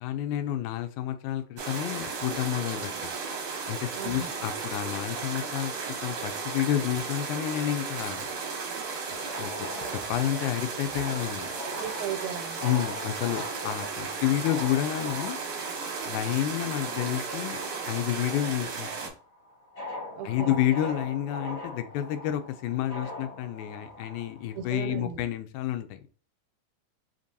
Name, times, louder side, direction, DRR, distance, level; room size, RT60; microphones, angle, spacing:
voice 1, 0.0-3.1 3.7-5.7 6.0-8.3 9.4-9.5 9.9-11.5 12.6-15.4 16.1-17.6 17.9-19.1 20.2-26.0, left 12 dB, 85° left, 9 dB, 2.0 m, -30 dB
sound 1, 1.6-19.1, right 4 dB, 65° right, 1.9 m, -35 dB
voice 2, 4.0-4.3 11.7-12.6 20.2-20.6 24.5-25.2, right 8 dB, 90° right, 7 dB, 2.1 m, -36 dB
sound 2, 9.1-18.1 18.4-24.9, left 1 dB, 30° left, 1.2 m, -42 dB
5.1 x 2.9 x 2.7 m, 0.40 s
omnidirectional pair, 3.5 m